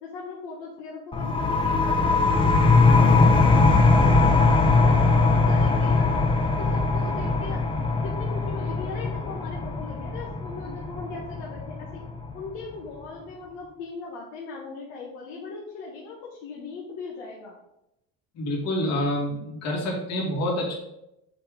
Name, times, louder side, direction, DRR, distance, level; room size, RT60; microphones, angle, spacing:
voice 1, 0.0-4.4 4.8-6.1 6.6-7.6 8.0-12.0 12.3-17.6, left 4 dB, 85° left, -2 dB, 1.5 m, -39 dB
sound 1, 1.1-12.5, left 3 dB, 15° left, 0.8 m, -21 dB
voice 2, 18.3-20.8, left 1 dB, 60° left, -2 dB, 2.6 m, -27 dB
7.5 x 3.7 x 5.1 m, 0.85 s
cardioid pair, 130°, 30 cm